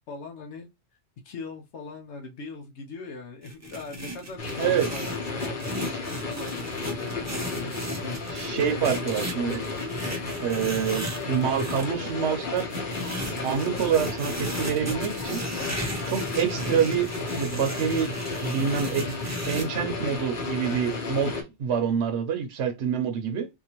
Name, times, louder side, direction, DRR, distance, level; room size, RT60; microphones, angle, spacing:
voice 1, 0.1-0.7 1.2-8.2 8.6-9.0, left 3 dB, 75° left, 1.0 m, -40 dB
sound 1, 3.4-11.9 12.6-19.6, right 1 dB, 25° right, 0.4 m, -36 dB
sound 2, 4.4-21.4, left 3 dB, 50° left, 0.9 m, -33 dB
voice 2, 8.3-9.6 10.4-12.7 13.4-15.4 16.1-18.1 18.4-19.1 19.4-21.3 21.6-23.5, right 7 dB, 75° right, 1.0 m, -26 dB
4.0 x 2.7 x 2.9 m
omnidirectional pair, 1.2 m